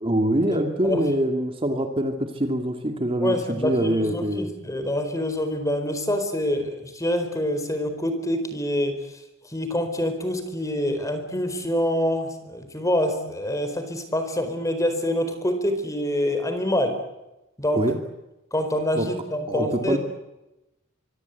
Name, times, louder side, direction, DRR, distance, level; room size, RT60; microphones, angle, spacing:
voice 1, 0.0-4.5 17.7-18.0 18.9-19.1 19.5-20.0, right 1 dB, 25° right, 5 dB, 2.3 m, -24 dB
voice 2, 3.2-9.1 9.5-17.0 17.6-17.8 18.5-20.0, left 1 dB, 15° left, 8 dB, 4.4 m, -26 dB
25.0 x 24.0 x 8.3 m, 0.96 s
head